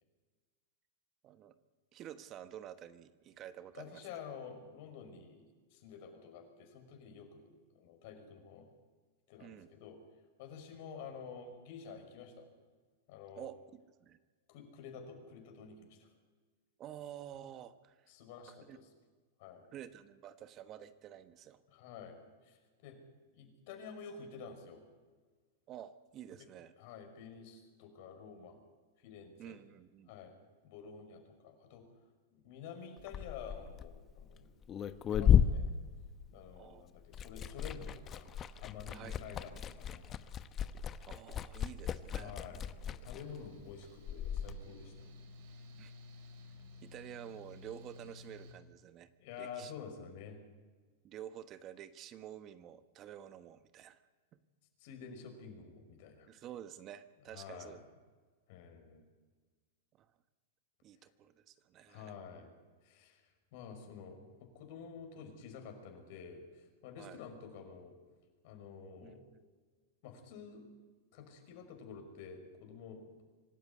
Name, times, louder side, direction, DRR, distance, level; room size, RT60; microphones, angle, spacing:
voice 1, 1.2-1.6 1.9-4.0 9.4-9.7 13.3-14.2 16.8-18.0 18.7-18.8 19.7-21.6 25.7-26.7 29.4-30.1 36.6-36.8 38.9-39.2 41.1-42.3 45.8-45.9 46.8-49.1 49.4-49.7 51.0-54.0 54.3-54.4 56.3-57.8 60.0-60.1 60.8-62.1 67.0-67.2 69.0-69.4, right 10 dB, 40° right, 11 dB, 1.3 m, -50 dB
voice 2, 3.8-8.7 9.3-10.0 10.4-12.5 13.1-13.5 14.5-16.1 18.1-18.9 19.4-19.7 21.7-23.0 23.3-24.8 26.4-26.5 26.8-28.6 29.0-29.6 30.1-30.3 30.6-31.9 32.3-34.5 35.1-35.7 36.3-38.3 38.6-40.3 42.2-45.1 49.2-50.4 54.8-56.3 57.3-57.8 58.5-59.0 61.9-62.5 62.8-63.2 63.5-67.9 68.4-69.2 70.0-70.7 71.1-73.0, left 6 dB, 60° left, 5 dB, 5.5 m, -50 dB
Liquid, 33.0-36.7 37.0-44.5, left 8 dB, 30° left, 1.1 m, -34 dB
Mechanical fan, 43.2-48.5, left 2 dB, 65° right, 4.5 m, -54 dB
25.5 x 12.5 x 9.6 m, 1.4 s
hypercardioid pair, 105°, 0 cm